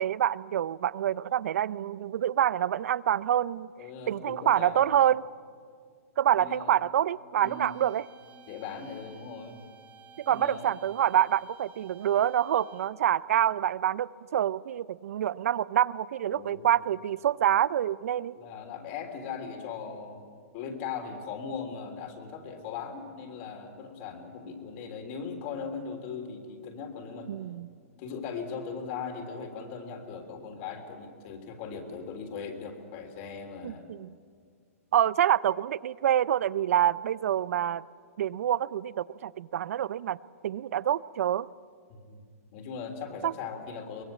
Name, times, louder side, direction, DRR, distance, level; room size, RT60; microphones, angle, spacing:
voice 1, 0.0-3.7 4.1-5.2 6.2-8.0 10.2-18.3 27.3-27.7 33.6-34.1 34.9-37.8 38.2-40.2 40.4-41.5 43.2-43.3, right 11 dB, 70° right, 20 dB, 0.5 m, -26 dB
voice 2, 3.8-4.9 6.4-6.7 7.4-7.8 8.5-9.6 10.3-10.7 16.3-16.7 18.4-20.2 20.5-27.3 28.0-33.8 41.9-42.2 42.5-44.0, left 6 dB, 45° left, 3 dB, 3.5 m, -39 dB
sound 1, 7.4-13.1, right 6 dB, 15° right, 1.3 m, -55 dB
23.5 x 19.5 x 7.5 m, 2.1 s
hypercardioid pair, 135°, 8 cm